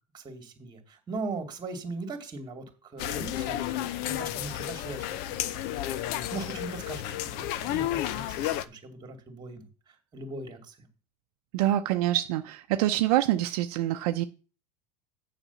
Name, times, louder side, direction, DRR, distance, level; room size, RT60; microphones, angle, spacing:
voice 1, 0.1-3.7 4.0-5.9 6.3-10.9, right 3 dB, 20° right, 5 dB, 2.4 m, -40 dB
sound 1, 3.0-8.6, left 13 dB, 55° left, 0.7 m, -32 dB
voice 2, 11.5-14.2, right 13 dB, 70° right, 7 dB, 0.7 m, -26 dB
7.1 x 5.1 x 7.0 m, 0.36 s
supercardioid pair, 125°, 20 cm